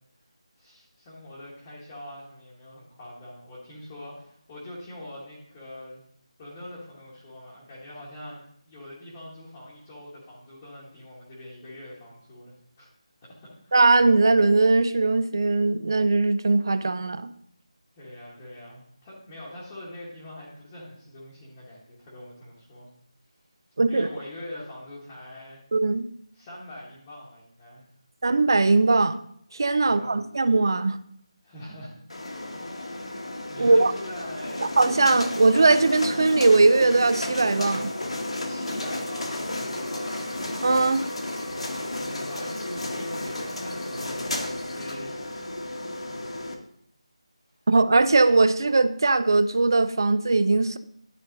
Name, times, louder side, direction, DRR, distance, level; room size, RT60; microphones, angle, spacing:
voice 1, 0.6-6.0 6.4-12.9 13.2-13.7 17.9-22.9 23.9-25.6 26.3-27.8 29.8-30.2 31.4-31.9 32.5-33.2 33.5-34.7 38.4-40.4 41.9-45.1 46.1-46.4, left 1 dB, 10° left, -7 dB, 1.1 m, -43 dB
voice 2, 13.7-17.3 23.8-24.1 25.7-26.1 28.2-29.2 29.5-31.0 33.6-33.9 34.8-37.9 40.6-41.0 47.7-50.8, right 3 dB, 40° right, 13 dB, 0.4 m, -20 dB
sound 1, 32.1-46.5, left 1 dB, 70° left, 1.4 m, -32 dB
11.5 x 4.0 x 3.8 m, 0.68 s
figure-of-eight pair, 175°, 3 cm